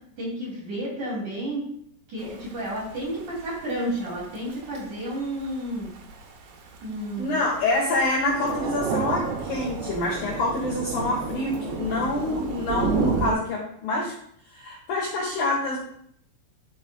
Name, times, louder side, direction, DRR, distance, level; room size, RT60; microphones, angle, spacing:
voice 1, 0.2-1.6 2.1-5.9 6.8-7.4, right 1 dB, 40° right, -6 dB, 3.7 m, -31 dB
Thunder / Rain, 2.2-13.3, right 5 dB, 85° right, 3.9 m, -32 dB
voice 2, 7.2-14.1 14.5-15.8, left 2 dB, 70° left, -4 dB, 2.3 m, -26 dB
12.0 x 5.2 x 2.4 m, 0.69 s
omnidirectional pair, 5.9 m